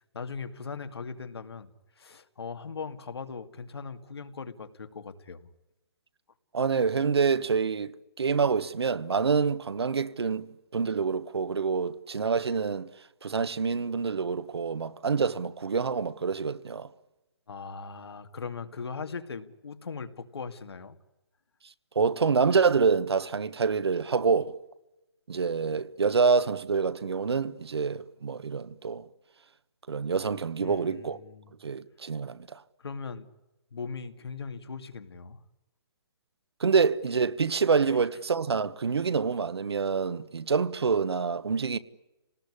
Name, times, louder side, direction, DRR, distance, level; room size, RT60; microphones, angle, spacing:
voice 1, 0.1-5.5 17.5-21.0 25.7-25.8 30.6-31.5 32.8-33.3 33.7-35.4 37.9-38.0, left 5 dB, 80° left, 2.3 m, -39 dB
voice 2, 6.5-10.5 10.7-12.9 13.2-16.9 21.9-24.6 25.3-29.0 29.9-31.2 31.6-32.6 36.6-41.8, right 5 dB, 85° right, 1.4 m, -26 dB
28.0 x 19.5 x 9.9 m
hypercardioid pair, 180°, 13 cm